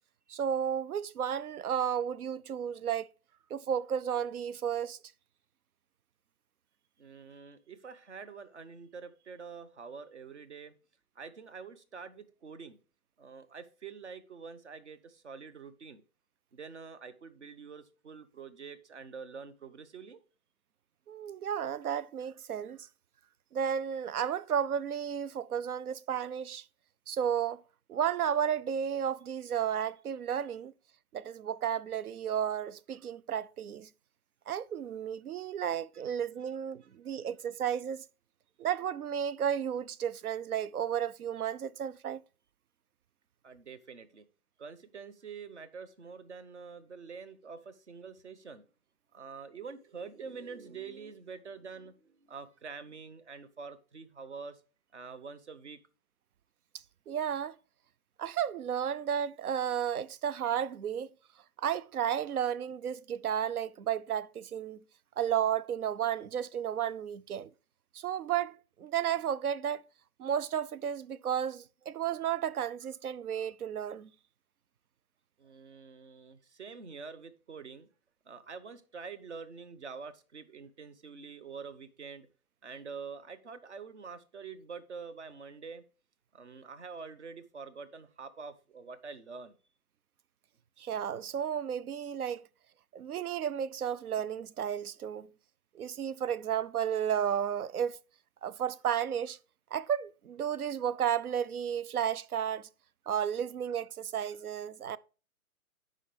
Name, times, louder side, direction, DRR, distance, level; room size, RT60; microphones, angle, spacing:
voice 1, 0.3-3.1 3.5-5.0 21.1-22.8 23.5-26.7 27.1-27.6 27.9-30.7 31.1-33.9 34.5-38.0 38.6-42.2 57.1-57.6 58.2-61.1 61.6-64.8 65.2-67.5 67.9-69.8 70.2-74.1 90.8-92.4 92.9-95.3 95.7-98.0 98.4-99.4 99.7-102.7 103.1-105.0, right 9 dB, 80° right, 0.6 m, -33 dB
voice 2, 7.0-10.7 11.2-12.8 13.2-16.0 16.5-20.2 43.4-44.2 44.6-48.7 49.1-54.6 54.9-55.8 75.4-77.9 78.2-82.3 82.6-85.8 86.3-89.6, right 5 dB, 50° right, 0.9 m, -46 dB
9.9 x 5.2 x 3.3 m
hypercardioid pair, 180°, 44 cm